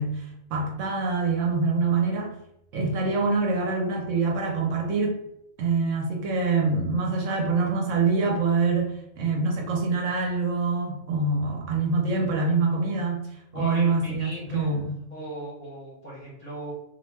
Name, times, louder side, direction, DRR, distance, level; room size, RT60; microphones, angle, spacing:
voice 1, 0.0-2.3 2.7-5.2 5.6-13.2 13.6-15.0, right 4 dB, 70° right, 1 dB, 0.9 m, -25 dB
voice 2, 13.5-14.8 15.1-16.7, right 1 dB, 35° left, -5 dB, 0.7 m, -37 dB
2.6 x 2.1 x 3.2 m, 0.81 s
omnidirectional pair, 1.4 m